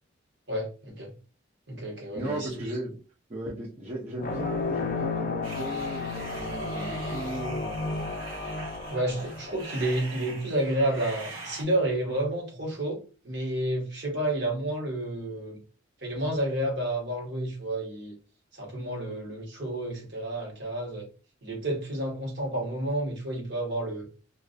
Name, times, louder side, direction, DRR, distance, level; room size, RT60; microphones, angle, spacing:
voice 1, 0.5-1.1 1.7-2.6 8.9-13.0 13.2-15.6 16.0-18.1 18.5-21.1 21.4-24.1, right 1 dB, 55° right, 1.0 m, -30 dB
voice 2, 2.1-3.0 3.3-8.2, right 1 dB, 35° right, 0.5 m, -36 dB
sound 1, 4.2-10.3, left 3 dB, 40° left, 0.4 m, -33 dB
sound 2, 5.4-11.6, right 2 dB, 90° right, 1.0 m, -42 dB
2.3 x 2.2 x 2.5 m
head